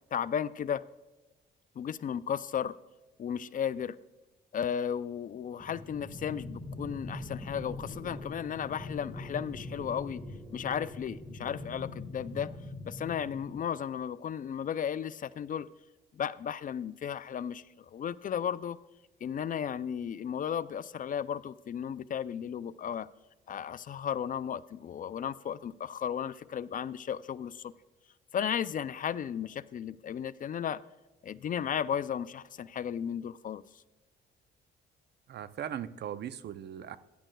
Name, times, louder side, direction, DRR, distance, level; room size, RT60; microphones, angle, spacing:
voice 1, 0.1-0.8 1.8-2.7 3.2-4.0 4.5-10.2 10.5-12.5 12.8-15.7 16.1-18.8 19.2-23.1 23.5-27.7 28.3-30.8 31.2-33.6, left 8 dB, 45° left, 16 dB, 0.4 m, -34 dB
sound 1, 5.6-13.6, left 2 dB, 5° left, 1.9 m, -42 dB
voice 2, 35.3-37.0, right 9 dB, 60° right, 14 dB, 0.6 m, -39 dB
15.0 x 10.0 x 2.3 m, 1.1 s
cardioid pair, 90°, 20 cm